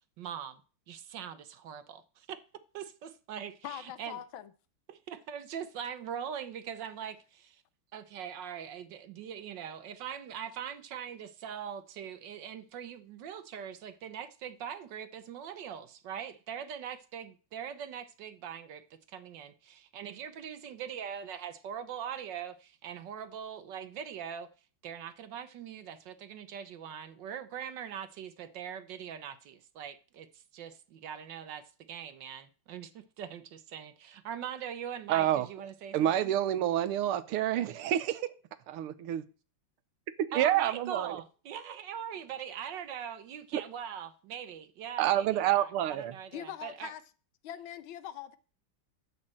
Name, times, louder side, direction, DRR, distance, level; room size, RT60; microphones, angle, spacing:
voice 1, 0.2-0.6 0.9-2.4 2.7-4.2 4.9-7.6 7.9-24.5 24.8-36.3 40.3-46.9, right 8 dB, 65° right, 1.2 m, -42 dB
voice 2, 3.6-4.5 46.3-47.0 47.4-48.4, left 11 dB, 75° left, 1.4 m, -42 dB
voice 3, 35.1-35.5 35.9-38.3 38.7-39.2 40.2-41.2 43.5-43.6 45.0-46.2, right 12 dB, 85° right, 1.7 m, -28 dB
12.5 x 4.3 x 7.5 m
omnidirectional pair, 2.4 m